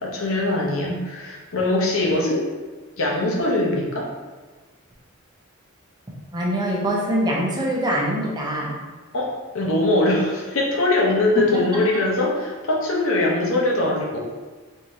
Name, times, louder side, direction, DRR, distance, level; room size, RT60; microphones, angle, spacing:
voice 1, 0.0-2.5 3.0-4.1 9.1-14.2, left 2 dB, 65° left, -2 dB, 0.8 m, -22 dB
voice 2, 6.3-8.7, right 1 dB, 20° right, -3 dB, 0.7 m, -23 dB
3.6 x 3.1 x 2.7 m, 1.3 s
head